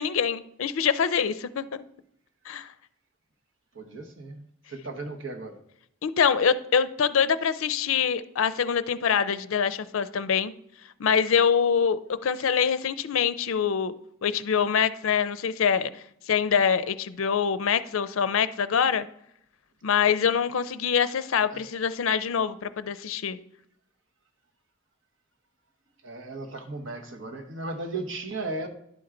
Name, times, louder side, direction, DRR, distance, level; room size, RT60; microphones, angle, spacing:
voice 1, 0.0-1.6 2.5-2.7 6.0-10.5 11.0-13.9 14.2-19.1 19.8-23.4, left 7 dB, 80° left, 0.4 m, -25 dB
voice 2, 3.7-4.4 4.7-5.6 21.5-21.6 26.0-28.7, right 2 dB, 65° right, 1.1 m, -35 dB
11.0 x 4.6 x 3.8 m
head